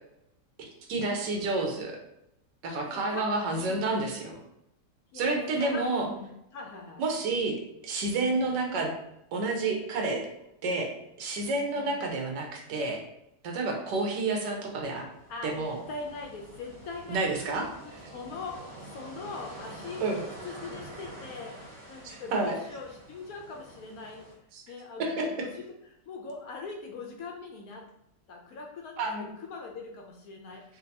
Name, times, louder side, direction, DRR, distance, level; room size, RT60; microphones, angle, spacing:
voice 1, 0.6-1.9 2.6-4.4 5.1-6.1 7.0-7.6 7.8-8.9 9.3-10.2 10.6-10.9 11.2-13.0 13.4-15.0 15.4-15.8 17.1-18.1 20.0-20.3 22.0-22.6 24.5-24.6 25.0-25.3 29.0-29.3, right 3 dB, 85° right, 1 dB, 1.4 m, -29 dB
voice 2, 2.8-3.3 3.6-4.0 5.1-7.0 8.2-8.4 11.7-12.0 15.3-20.1 20.4-24.2 24.7-25.5 26.1-27.8 28.3-30.6, left 4 dB, 70° left, 1 dB, 0.9 m, -41 dB
sound 1, 15.0-24.3, right 1 dB, 30° right, 1.3 m, -47 dB
5.2 x 2.3 x 2.7 m, 0.83 s
omnidirectional pair, 1.9 m